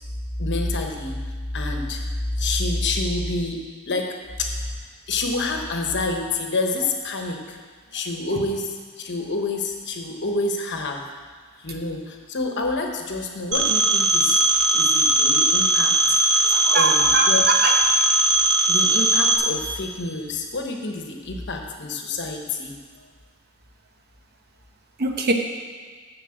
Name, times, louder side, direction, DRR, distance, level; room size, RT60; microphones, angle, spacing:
voice 1, 0.4-1.2 1.5-2.0 2.4-4.7 5.1-7.6 7.9-11.1 11.6-14.4 14.7-17.4 18.7-23.1, left 2 dB, 55° left, 3 dB, 1.1 m, -28 dB
Telephone, 13.5-19.4, right 2 dB, 80° right, 1.2 m, -19 dB
voice 2, 16.5-17.8 25.0-25.3, right 3 dB, 50° right, 3 dB, 1.0 m, -23 dB
7.4 x 6.7 x 7.8 m, 1.5 s
head